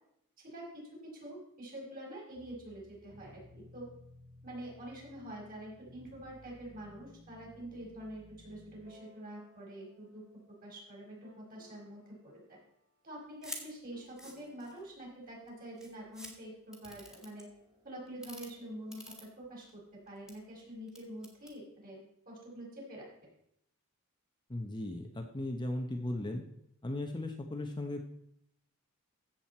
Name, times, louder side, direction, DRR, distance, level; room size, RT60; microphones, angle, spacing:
voice 1, 1.2-3.9 4.4-10.2 10.6-12.6 13.0-17.5 17.8-19.8 20.1-22.0 22.3-23.1, right 1 dB, 40° right, -3 dB, 5.1 m, -46 dB
sound 1, 2.3-10.7 11.2-12.1 13.9-15.6 16.7-19.3, left 1 dB, 90° right, 3.7 m, -59 dB
sound 2, 13.4-13.6 14.0-14.9 15.5-15.6 15.8-16.3 16.7-17.4 18.1-18.5 18.9-19.7 20.1-20.3 20.9-21.5, equal, 5° right, 1.9 m, -46 dB
voice 2, 24.5-26.4 26.8-28.0, left 1 dB, 20° left, 4 dB, 0.8 m, -37 dB
15.0 x 7.7 x 4.3 m, 0.75 s
head